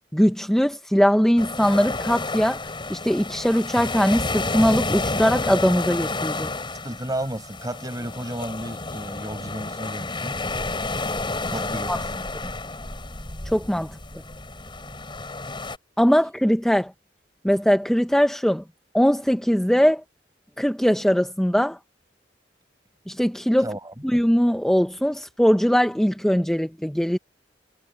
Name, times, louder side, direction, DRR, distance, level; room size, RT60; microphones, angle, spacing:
voice 1, 0.1-2.6 2.9-6.5 11.9-12.0 13.4-14.0 16.0-16.9 17.4-18.6 18.9-20.0 20.6-21.8 23.1-23.7 24.0-27.2, equal, 5° left, 0.7 m, -21 dB
sound 1, 1.4-15.8, left 2 dB, 30° left, 5.2 m, -30 dB
voice 2, 6.8-10.4 11.5-12.5 23.6-23.9, right 1 dB, 20° right, 6.4 m, -33 dB
head